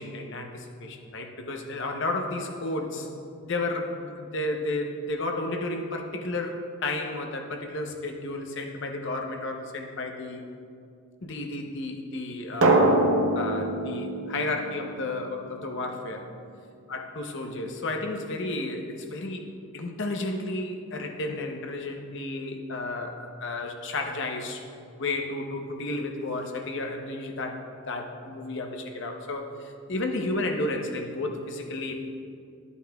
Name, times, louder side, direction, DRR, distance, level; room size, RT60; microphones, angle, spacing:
voice 1, 0.0-3.1 3.4-10.5 11.2-13.0 13.3-16.3 16.9-19.5 19.7-24.6 25.0-31.9, left 2 dB, 55° left, 3 dB, 0.7 m, -32 dB
Drum, 12.6-15.3, right 2 dB, 70° right, 0.7 m, -24 dB
11.5 x 8.2 x 2.3 m, 2.4 s
head